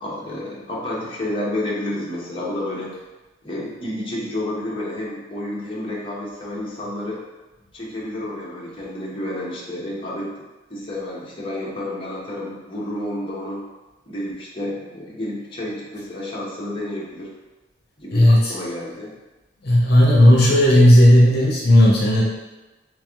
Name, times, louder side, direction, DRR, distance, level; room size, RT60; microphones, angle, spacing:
voice 1, 0.0-3.0 3.4-7.2 7.7-10.3 10.7-13.6 14.1-17.3 18.0-19.1, left 1 dB, 30° left, -7 dB, 1.0 m, -30 dB
voice 2, 18.1-18.5 19.6-22.2, left 1 dB, 60° left, -4 dB, 0.8 m, -13 dB
3.4 x 3.3 x 3.6 m, 1.1 s
head